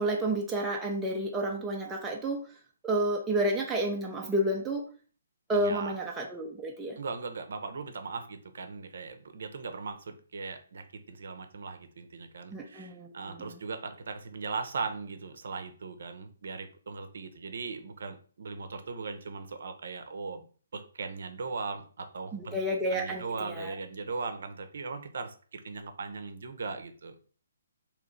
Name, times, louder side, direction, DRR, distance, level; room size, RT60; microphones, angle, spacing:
voice 1, 0.0-2.5 2.8-4.9 5.5-7.0 12.5-13.6 22.3-23.7, right 1 dB, 10° right, -1 dB, 0.5 m, -30 dB
voice 2, 5.6-5.9 7.0-20.5 20.7-22.6 22.9-27.1, right 4 dB, 65° right, 8 dB, 0.7 m, -39 dB
3.1 x 3.0 x 3.8 m, 0.41 s
hypercardioid pair, 155°, 0 cm